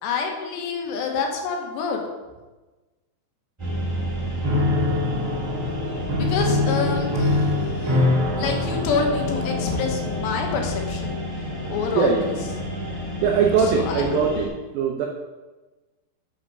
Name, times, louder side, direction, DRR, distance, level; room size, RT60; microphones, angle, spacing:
voice 1, 0.0-2.0 6.2-8.0 8.4-11.1 11.7-12.3 13.7-14.2, left 5 dB, 75° left, 2 dB, 3.2 m, -27 dB
sound 1, 3.6-14.5, left 1 dB, 35° right, 0.4 m, -29 dB
Piano, 4.4-10.3, left 2 dB, 50° right, 1.7 m, -24 dB
voice 2, 7.6-8.2 11.9-12.2 13.2-14.5 14.7-15.1, right 6 dB, 80° right, 1 dB, 2.1 m, -22 dB
10.0 x 4.9 x 5.5 m, 1.2 s
omnidirectional pair, 5.1 m